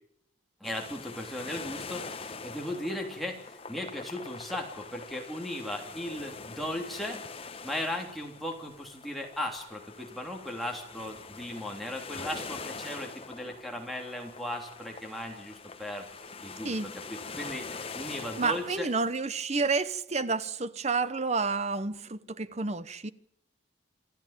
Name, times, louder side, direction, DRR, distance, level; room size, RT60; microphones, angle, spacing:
sound 1, 0.6-19.1, left 4 dB, 30° left, 1.1 m, -44 dB
voice 1, 0.6-7.2 7.6-16.0 16.4-16.8 17.1-18.9, left 1 dB, ahead, 3.2 m, -37 dB
voice 2, 18.4-23.1, right 4 dB, 35° right, 0.8 m, -30 dB
27.0 x 13.0 x 9.0 m
head